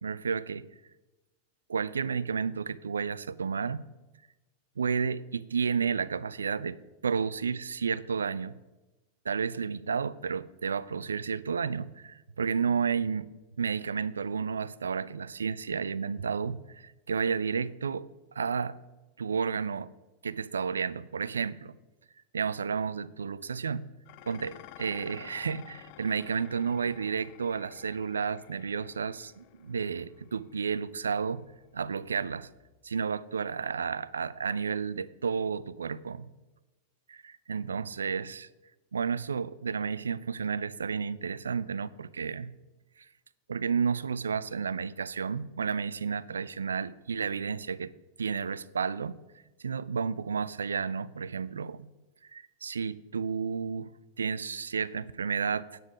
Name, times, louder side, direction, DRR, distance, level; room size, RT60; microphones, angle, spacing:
voice 1, 0.0-0.7 1.7-3.8 4.8-8.6 9.3-13.3 13.6-18.1 18.4-18.8 19.2-19.9 20.2-21.8 22.3-23.9 24.3-31.4 31.7-32.5 32.8-36.3 37.1-38.5 38.9-42.5 43.0-43.1 43.5-47.9 48.2-49.2 49.6-51.9 52.3-53.9 54.2-55.8, right 6 dB, 70° right, 18 dB, 0.4 m, -32 dB
Dishes pots and pans, 24.0-32.9, left 15 dB, 45° left, 0.4 m, -53 dB
9.2 x 9.2 x 4.8 m, 1.1 s
figure-of-eight pair, 90°, 0 cm